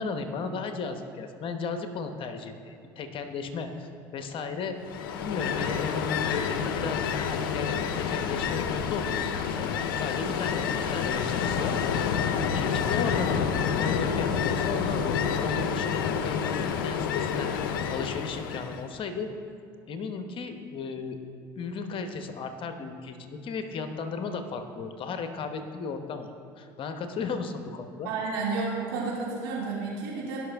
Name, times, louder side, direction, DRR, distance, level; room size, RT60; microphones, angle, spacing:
voice 1, 0.0-4.7 5.2-11.7 12.4-17.5 17.9-19.3 19.9-21.2 21.6-26.3 26.6-28.1, left 4 dB, 50° left, 7 dB, 1.0 m, -35 dB
Ocean, 4.8-18.9, left 7 dB, 85° left, 0.6 m, -28 dB
voice 2, 28.0-30.4, right 4 dB, 80° right, -4 dB, 2.6 m, -31 dB
16.0 x 6.0 x 3.5 m, 2.4 s
hypercardioid pair, 70°, 11 cm